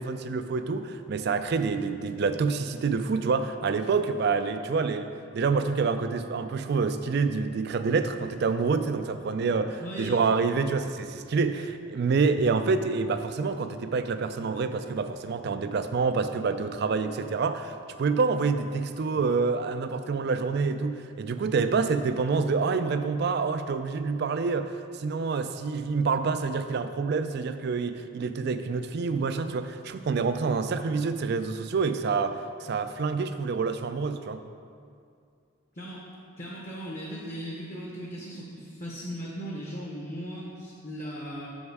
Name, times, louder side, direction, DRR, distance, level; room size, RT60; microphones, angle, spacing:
voice 1, 0.0-34.4, right 4 dB, 50° right, 10 dB, 0.3 m, -27 dB
voice 2, 9.8-10.2 35.7-36.0 36.4-41.5, equal, 35° left, -3 dB, 0.8 m, -37 dB
7.0 x 5.3 x 4.7 m, 2.3 s
head